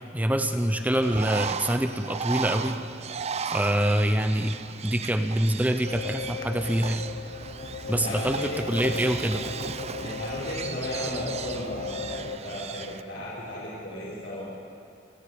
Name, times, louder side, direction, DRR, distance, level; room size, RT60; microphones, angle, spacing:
voice 1, 0.1-2.8 3.5-4.6 4.8-7.0 7.9-9.4, right 1 dB, 10° right, 7 dB, 0.8 m, -25 dB
Bird, 1.0-13.0, right 6 dB, 35° right, 0.5 m, -36 dB
sound 1, 5.8-12.4, left 4 dB, 50° left, 1.0 m, -37 dB
voice 2, 7.9-8.8 10.0-14.4, equal, 75° left, -10 dB, 5.2 m, -35 dB
29.0 x 10.0 x 9.4 m, 2.6 s
head